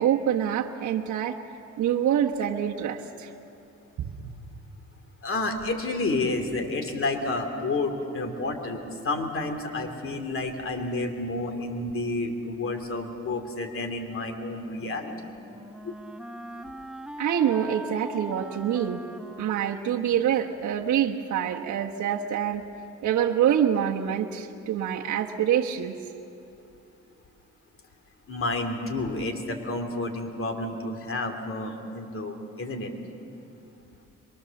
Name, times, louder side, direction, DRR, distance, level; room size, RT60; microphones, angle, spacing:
voice 1, 0.0-1.4 1.8-3.3 4.0-4.3 17.2-19.0 19.4-22.6 23.0-25.9, right 9 dB, 70° right, -1 dB, 1.2 m, -26 dB
voice 2, 5.2-15.3 15.8-15.9 28.3-32.9, left 2 dB, 45° left, 5 dB, 2.9 m, -30 dB
Wind instrument woodwind instrument, 14.8-20.6, right 1 dB, 5° right, 1.0 m, -41 dB
23.0 x 23.0 x 7.1 m, 2.7 s
cardioid pair, 90°, 30 cm